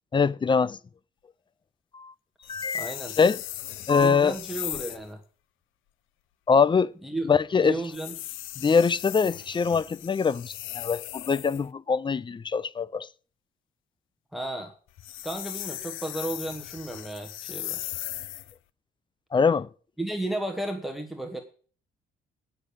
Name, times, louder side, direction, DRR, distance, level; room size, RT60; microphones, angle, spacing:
voice 1, 0.1-0.8 1.9-2.1 2.5-3.4 3.9-4.4 6.5-6.9 7.2-7.8 8.6-13.1 19.3-19.7, left 5 dB, 25° left, 0.5 m, -23 dB
sound 1, 2.4-5.1 7.8-11.7 14.9-18.6, left 14 dB, 80° left, 0.5 m, -38 dB
voice 2, 2.7-3.2 4.0-5.2 7.0-7.3 7.6-8.1 14.3-14.7 15.2-17.8 20.0-21.4, right 1 dB, ahead, 1.3 m, -33 dB
9.0 x 6.6 x 8.5 m
cardioid pair, 90°, 20 cm